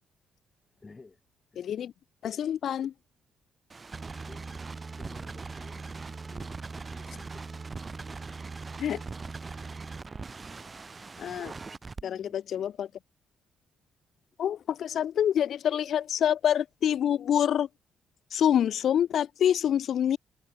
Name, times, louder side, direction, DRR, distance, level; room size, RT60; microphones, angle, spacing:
voice 1, 0.7-1.2 1.5-1.7 4.3-4.6 5.0-7.4 12.0-12.5, left 3 dB, 25° left, 3.9 m, -53 dB
voice 2, 1.6-1.9 2.2-2.9 8.8-9.0 11.2-11.5 12.0-12.9 14.4-17.7 18.3-20.2, left 9 dB, 65° left, 0.4 m, -26 dB
sound 1, 3.7-12.0, right 4 dB, 30° right, 0.7 m, -40 dB
cardioid pair, 90°, 0 cm